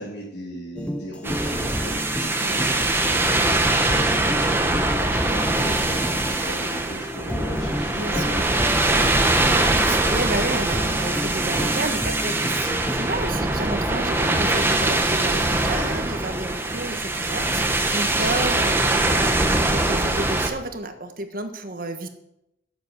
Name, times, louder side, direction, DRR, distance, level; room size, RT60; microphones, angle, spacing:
voice 1, 0.0-9.1 14.8-15.0, equal, 75° left, -4 dB, 2.6 m, -37 dB
sound 1, 0.8-13.1, equal, 5° left, 0.6 m, -32 dB
sound 2, 1.2-20.5, right 2 dB, 15° right, 1.1 m, -22 dB
voice 2, 8.0-8.5 9.8-22.1, right 2 dB, 50° right, 7 dB, 1.4 m, -31 dB
11.0 x 7.3 x 8.0 m, 0.86 s
head